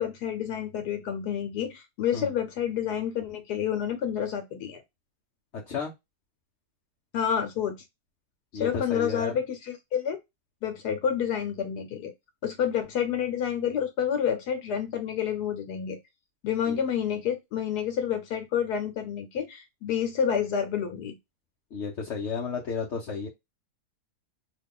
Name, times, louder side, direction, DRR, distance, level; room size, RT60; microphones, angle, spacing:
voice 1, 0.0-4.8 7.1-7.7 8.5-10.2 10.6-12.1 12.4-16.0 16.4-21.2, left 8 dB, 75° left, 6 dB, 1.2 m, -29 dB
voice 2, 8.5-9.3 16.7-16.8 21.7-23.3, left 5 dB, 60° left, -1 dB, 0.8 m, -32 dB
2.9 x 2.3 x 3.6 m, 0.20 s
omnidirectional pair, 1.7 m